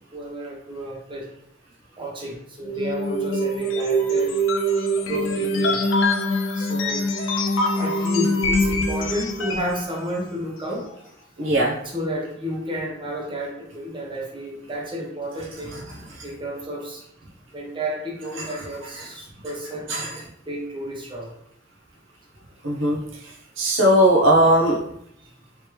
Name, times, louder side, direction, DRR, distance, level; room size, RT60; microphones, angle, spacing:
voice 1, 0.1-1.3 2.0-4.4 5.1-5.8 6.5-7.3 7.7-10.9 11.9-15.8 16.2-17.0 17.5-19.9 20.5-21.3, equal, 25° right, -2 dB, 0.9 m, -31 dB
sound 1, 2.6-9.8, equal, 80° left, 0.5 m, -23 dB
voice 2, 11.4-11.7 18.4-18.5 19.9-20.1 22.6-23.0 23.6-24.8, right 1 dB, 70° right, -2 dB, 0.8 m, -18 dB
3.2 x 3.1 x 3.1 m, 0.72 s
head